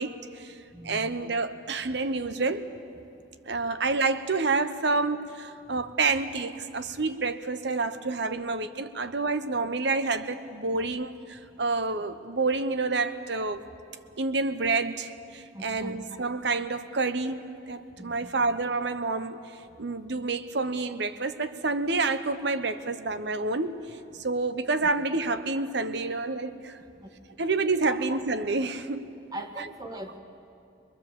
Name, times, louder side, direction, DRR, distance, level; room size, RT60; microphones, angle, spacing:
voice 1, 0.0-0.5 0.8-2.7 3.5-13.6 14.2-19.4 19.8-26.8 27.4-29.0 29.6-29.7, right 3 dB, 65° right, 1.0 m, -28 dB
voice 2, 0.7-1.2 15.5-16.0 18.0-18.3 27.0-27.1 27.8-28.0 29.3-30.2, right 1 dB, 20° right, 1.5 m, -40 dB
24.5 x 21.5 x 7.4 m
head